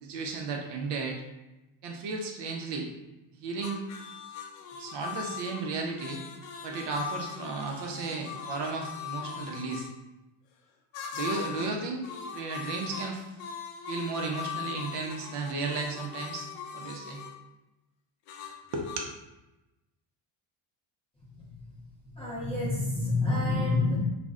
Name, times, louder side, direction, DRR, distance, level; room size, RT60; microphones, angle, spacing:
voice 1, 0.0-1.2 1.8-2.9 3.4-3.8 4.8-6.2 6.6-9.9 11.1-12.1 12.3-13.3 13.9-16.5 16.7-17.2 18.7-19.1, right 4 dB, 55° right, 2 dB, 0.5 m, -34 dB
sound 1, 3.6-9.9 10.9-11.8 12.0-17.4 18.3-19.0, left 8 dB, 90° left, 0.6 m, -40 dB
voice 2, 22.1-24.0, left 3 dB, 15° left, -9 dB, 0.4 m, -27 dB
2.5 x 2.1 x 3.4 m, 0.99 s
cardioid pair, 165°, 50 cm